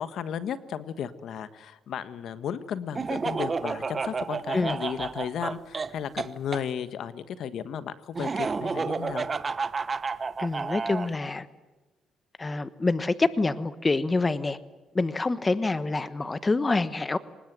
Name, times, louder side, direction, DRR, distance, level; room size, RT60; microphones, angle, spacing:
voice 1, 0.0-9.3, left 8 dB, 70° left, 13 dB, 1.4 m, -34 dB
Laughter, 2.9-6.6 8.1-11.1, right 4 dB, 35° right, 1.1 m, -30 dB
voice 2, 10.4-11.5 12.4-14.6 14.9-17.2, left 3 dB, 25° left, 14 dB, 1.2 m, -26 dB
25.0 x 20.5 x 9.4 m, 1.2 s
cardioid pair, 90°, 0 cm